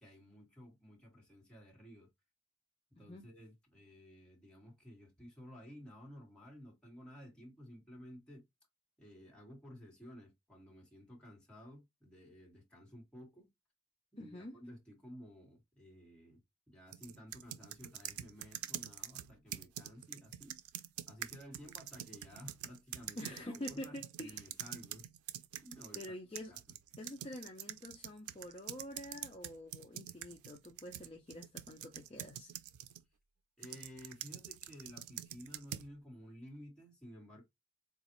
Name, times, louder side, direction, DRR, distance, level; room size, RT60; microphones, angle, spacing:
voice 1, 0.0-2.1 2.9-8.4 9.0-13.5 14.1-20.6 21.1-25.1 25.6-26.0 26.5-26.6 33.6-37.4, equal, 5° left, 1.4 m, -54 dB
voice 2, 3.0-3.3 14.2-14.5 23.2-24.4 25.9-26.5 27.0-32.5, left 1 dB, 25° left, 0.5 m, -47 dB
sound 1, 16.9-26.1 26.4-33.0 33.6-35.9, right 12 dB, 90° right, 0.4 m, -46 dB
3.9 x 2.4 x 2.9 m
head